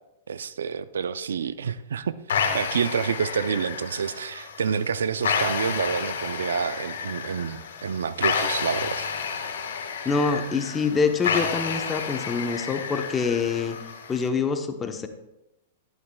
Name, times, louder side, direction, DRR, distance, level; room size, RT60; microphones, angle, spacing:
voice 1, 0.3-2.2 2.5-9.1, right 6 dB, 90° right, 14 dB, 0.4 m, -28 dB
sound 1, 2.3-14.3, left 6 dB, 80° left, 1.4 m, -30 dB
voice 2, 10.0-13.8 14.1-15.1, left 5 dB, 15° left, 7 dB, 0.9 m, -25 dB
11.5 x 11.0 x 2.3 m, 0.91 s
hypercardioid pair, 140°, 0 cm